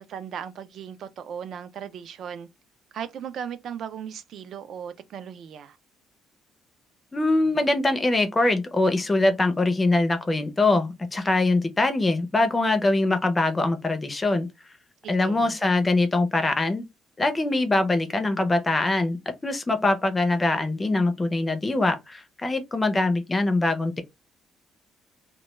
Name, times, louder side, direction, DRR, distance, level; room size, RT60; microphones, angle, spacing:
voice 1, 0.0-2.5 2.9-5.8 15.0-15.6, right 8 dB, 50° right, 0.3 m, -37 dB
voice 2, 7.1-14.5 15.1-16.8 17.2-24.0, left 2 dB, 15° left, 0.4 m, -23 dB
2.2 x 2.1 x 2.9 m
cardioid pair, 160°, 0 cm